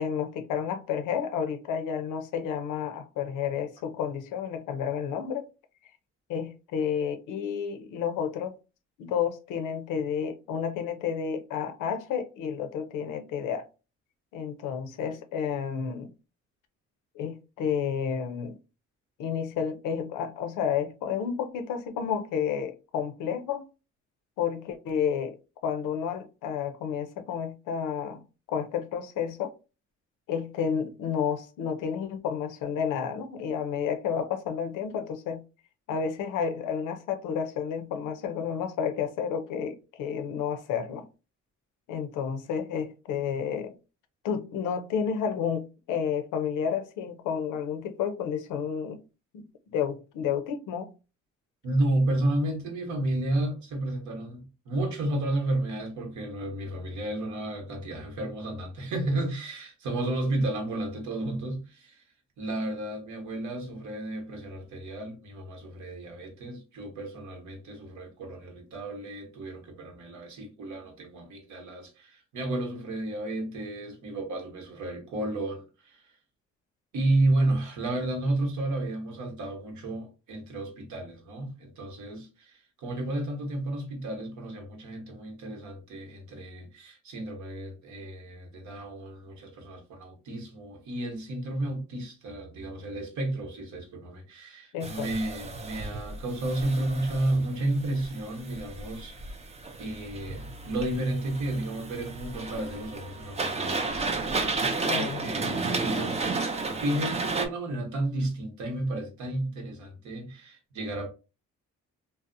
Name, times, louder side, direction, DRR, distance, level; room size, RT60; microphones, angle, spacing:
voice 1, 0.0-5.5 6.3-8.5 9.0-13.6 14.3-16.1 17.2-18.6 19.2-23.7 24.4-25.4 25.6-28.2 28.5-29.5 30.3-35.4 35.9-41.1 41.9-43.8 44.2-49.0 49.3-50.9 94.7-95.1 104.8-105.2, left 7 dB, 85° left, 0.5 m, -31 dB
voice 2, 51.6-62.0 62.4-76.1 76.9-99.4 99.8-104.3 104.9-111.1, right 1 dB, 75° right, 1.0 m, -32 dB
sound 1, 94.8-107.5, right 3 dB, 20° right, 0.4 m, -33 dB
2.7 x 2.0 x 2.5 m
cardioid pair, 90°, 30 cm